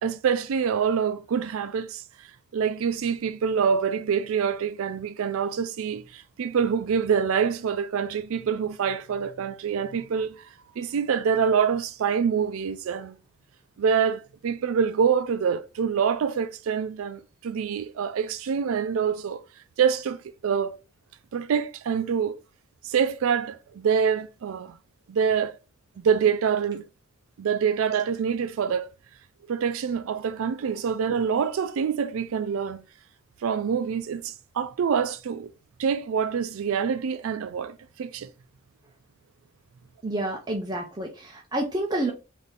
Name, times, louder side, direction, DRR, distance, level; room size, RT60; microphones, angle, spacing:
voice 1, 0.0-2.3 2.5-10.4 10.8-13.2 13.8-19.4 19.8-20.8 21.3-22.4 22.8-24.8 25.1-25.6 26.0-26.8 27.4-28.9 29.5-32.8 33.4-35.5 35.8-38.3, right 7 dB, 75° right, 0.4 m, -26 dB
voice 2, 40.0-42.1, right 1 dB, 20° right, 0.5 m, -29 dB
4.0 x 2.6 x 3.3 m
head